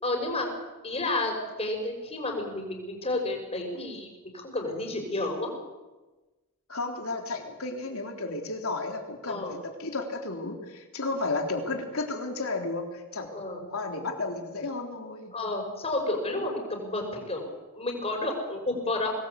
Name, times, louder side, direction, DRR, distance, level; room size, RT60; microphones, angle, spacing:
voice 1, 0.0-0.5 0.8-4.1 4.3-5.5 9.3-9.5 13.3-13.6 15.3-17.5 17.7-19.1, left 2 dB, 30° left, 3 dB, 6.0 m, -31 dB
voice 2, 6.7-13.3 13.7-15.3, left 3 dB, 70° left, 3 dB, 3.7 m, -33 dB
25.0 x 19.5 x 8.4 m, 1.2 s
head